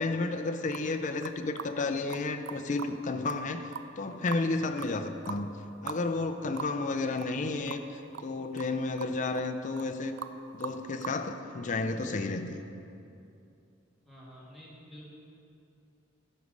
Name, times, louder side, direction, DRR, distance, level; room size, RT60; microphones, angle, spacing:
voice 1, 0.0-3.7 4.0-5.5 5.8-10.1 10.5-12.6, left 3 dB, 40° left, 7 dB, 0.5 m, -32 dB
sound 1, 0.7-0.9 1.2-1.7 2.1-2.2 2.5-2.9 3.3-3.4 3.7-4.5 4.8-4.9 5.3-5.4 5.9-6.0 6.3-6.4 6.6-6.7 7.2-7.4 7.7-7.8 8.1-8.3 8.6-8.7 9.0-9.5 9.7-9.9 10.2-10.3 10.6-11.2, right 8 dB, 65° right, 0.4 m, -40 dB
voice 2, 14.0-15.1, equal, ahead, -8 dB, 2.3 m, -49 dB
10.0 x 6.6 x 5.2 m, 2.6 s
head